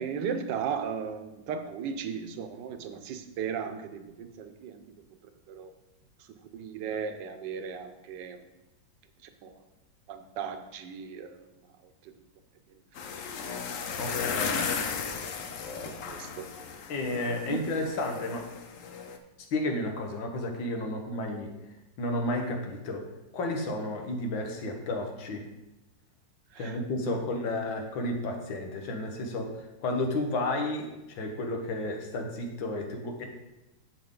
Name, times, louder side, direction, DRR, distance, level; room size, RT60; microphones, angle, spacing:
voice 1, 0.0-4.8 5.5-5.7 6.2-6.3 6.5-8.4 9.2-9.5 10.1-11.7 12.0-12.1 13.0-13.1 13.9-14.1 14.6-14.7 15.7-16.5 17.5-17.6 26.5-27.2, right 7 dB, 75° right, 8 dB, 1.4 m, -36 dB
sound 1, 13.0-19.2, left 6 dB, 60° left, 0.9 m, -35 dB
voice 2, 14.0-14.6 16.9-18.5 19.5-21.5 22.0-23.0 23.3-25.4 26.6-33.3, left 2 dB, 90° left, 3 dB, 1.9 m, -32 dB
7.8 x 7.3 x 3.8 m, 0.96 s
omnidirectional pair, 2.0 m